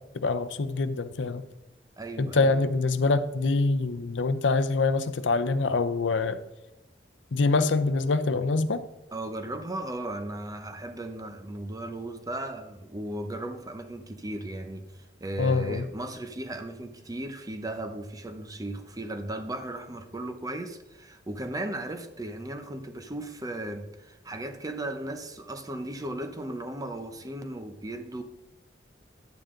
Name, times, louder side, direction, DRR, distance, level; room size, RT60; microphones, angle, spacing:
voice 1, 0.1-1.4 2.2-6.4 7.3-8.8 15.4-15.8, left 3 dB, 85° left, 0.6 m, -25 dB
voice 2, 2.0-2.6 9.1-28.2, right 1 dB, 20° right, 0.9 m, -36 dB
10.5 x 8.9 x 3.8 m
head